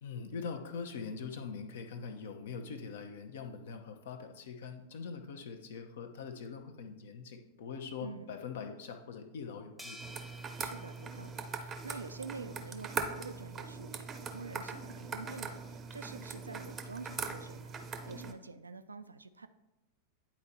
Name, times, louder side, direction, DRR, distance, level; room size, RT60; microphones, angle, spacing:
voice 1, 0.0-10.0, left 5 dB, 60° left, 5 dB, 0.8 m, -43 dB
voice 2, 8.0-8.4 10.6-17.8 18.1-19.5, right 4 dB, 80° right, 11 dB, 0.4 m, -47 dB
sound 1, 9.8-12.3, equal, 5° left, 0.9 m, -53 dB
sound 2, 10.0-18.3, right 5 dB, 25° right, 0.7 m, -41 dB
9.6 x 4.3 x 4.2 m, 0.96 s
figure-of-eight pair, 90°, 0 cm